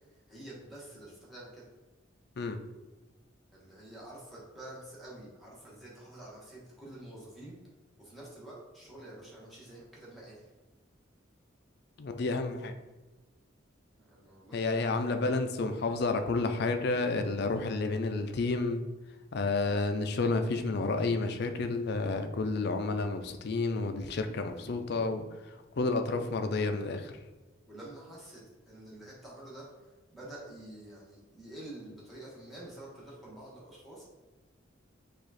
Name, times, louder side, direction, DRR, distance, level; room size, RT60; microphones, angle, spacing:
voice 1, 0.0-1.7 3.5-7.6 8.0-10.5 14.0-15.4 27.7-34.0, right 1 dB, ahead, -7 dB, 1.3 m, -48 dB
voice 2, 12.0-12.7 14.5-18.8 19.3-25.2 25.8-27.1, left 3 dB, 55° left, 7 dB, 0.4 m, -30 dB
4.9 x 2.5 x 4.1 m, 1.2 s
head